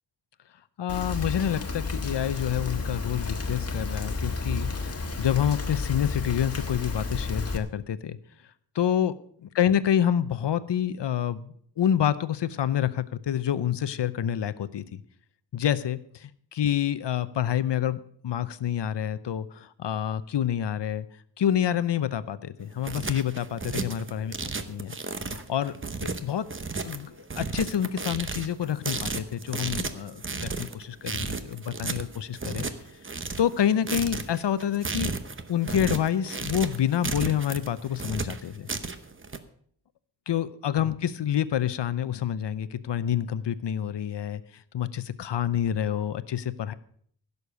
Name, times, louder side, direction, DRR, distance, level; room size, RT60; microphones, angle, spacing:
voice 1, 0.8-8.2 8.7-15.0 15.5-21.1 21.4-25.0 25.3-25.7 26.0-26.5 26.8-32.7 33.4-35.1 35.5-38.7 40.3-46.7, left 9 dB, 75° left, 15 dB, 0.8 m, -28 dB
Rain, 0.9-7.6, left 3 dB, 35° left, 1.5 m, -31 dB
sound 1, 22.6-39.4, right 4 dB, 30° right, 0.9 m, -33 dB
16.0 x 6.9 x 6.7 m, 0.62 s
wide cardioid pair, 145°, 43 cm